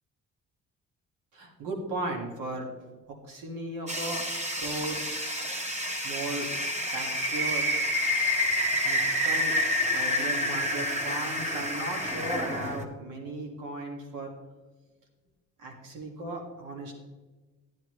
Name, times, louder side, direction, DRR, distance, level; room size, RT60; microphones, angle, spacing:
voice 1, 1.3-4.2 4.6-5.4 6.0-6.5 6.9-7.9 8.8-9.6 9.9-14.3 15.6-16.9, right 2 dB, 90° right, 1 dB, 2.1 m, -36 dB
sound 1, 3.9-12.8, equal, 20° right, 1.3 m, -28 dB
11.5 x 10.0 x 3.2 m, 1.2 s
cardioid pair, 90°, 30 cm